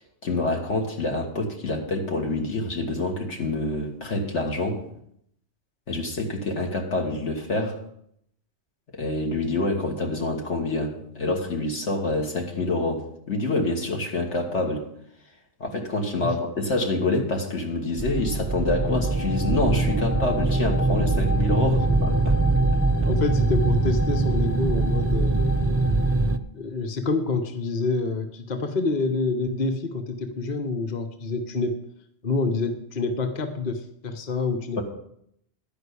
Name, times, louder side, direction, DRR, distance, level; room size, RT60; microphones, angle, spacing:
voice 1, 0.2-4.8 5.9-7.8 8.9-14.9 15.6-22.4, left 2 dB, 85° left, 1 dB, 2.0 m, -27 dB
sound 1, 18.0-26.4, right 2 dB, 20° right, 0.4 m, -22 dB
voice 2, 23.0-25.4 26.5-31.8 32.2-34.8, left 3 dB, 40° left, 6 dB, 1.0 m, -27 dB
11.5 x 5.2 x 8.3 m, 0.72 s
omnidirectional pair, 1.2 m